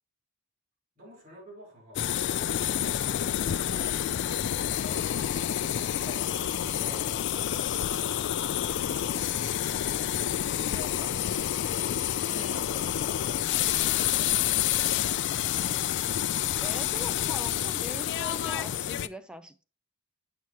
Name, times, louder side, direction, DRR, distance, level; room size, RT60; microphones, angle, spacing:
voice 1, 1.0-6.4 6.7-8.1, left 1 dB, 45° right, 4.2 m, -50 dB
sound 1, 1.9-19.1, left 11 dB, 55° left, 0.3 m, -28 dB
voice 2, 12.3-12.6 16.6-19.6, equal, 5° right, 0.5 m, -41 dB
8.3 x 6.0 x 3.0 m
head